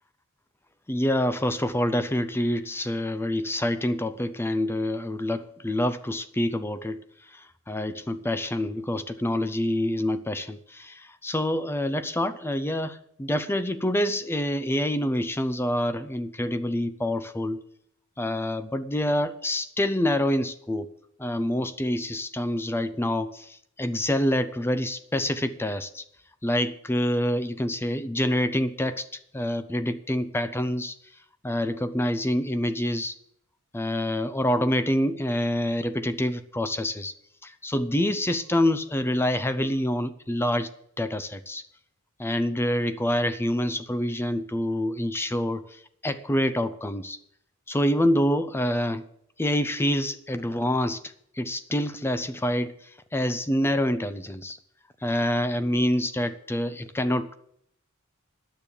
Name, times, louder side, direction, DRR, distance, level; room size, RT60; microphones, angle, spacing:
voice 1, 0.9-17.6 18.2-20.9 21.2-26.0 26.4-31.0 31.4-33.2 33.7-37.1 37.4-40.7 41.0-41.6 42.2-47.2 47.7-49.1 49.4-54.6 55.0-57.3, left 1 dB, 10° left, 12 dB, 0.5 m, -27 dB
10.5 x 7.0 x 8.4 m, 0.70 s
head